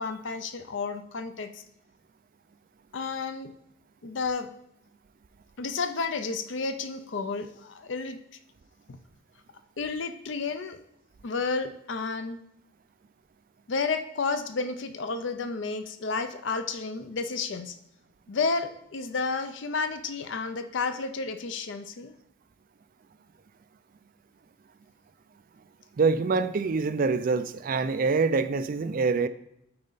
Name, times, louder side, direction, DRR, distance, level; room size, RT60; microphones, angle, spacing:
voice 1, 0.0-1.6 2.9-3.5 4.0-4.5 5.6-8.2 8.9-9.0 9.8-10.8 11.2-12.4 13.7-17.7 18.3-22.1, left 4 dB, 70° left, 9 dB, 0.6 m, -31 dB
voice 2, 26.0-29.3, right 4 dB, 45° right, 12 dB, 0.4 m, -25 dB
8.6 x 4.3 x 4.0 m, 0.77 s
head